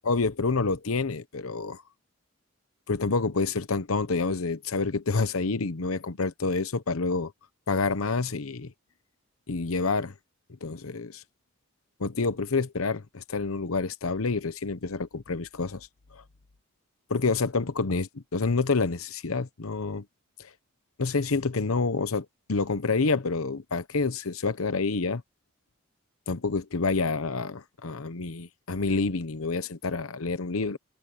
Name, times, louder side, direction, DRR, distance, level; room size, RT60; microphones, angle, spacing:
voice 1, 0.0-1.8 2.9-7.3 7.7-8.7 9.5-10.1 10.6-11.2 12.0-15.9 16.1-16.2 17.1-20.0 20.4-20.5 21.0-25.2 26.3-30.8, left 4 dB, 85° left, 0.9 m, -28 dB
head